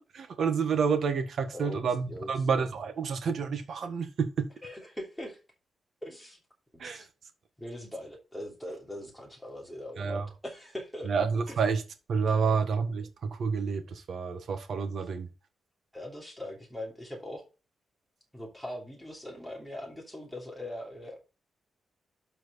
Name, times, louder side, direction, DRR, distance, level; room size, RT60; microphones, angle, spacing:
voice 1, 0.1-4.5 6.8-7.0 10.0-10.3 11.1-11.8 12.1-15.3, right 5 dB, 55° right, 1.5 m, -29 dB
voice 2, 1.5-2.5 4.6-5.4 6.0-6.4 6.8-7.1 7.6-11.1 11.5-11.6 12.3-12.6 15.9-17.5 18.3-21.2, left 1 dB, 5° left, 3.1 m, -41 dB
12.0 x 4.6 x 4.1 m
wide cardioid pair, 170°, 0 cm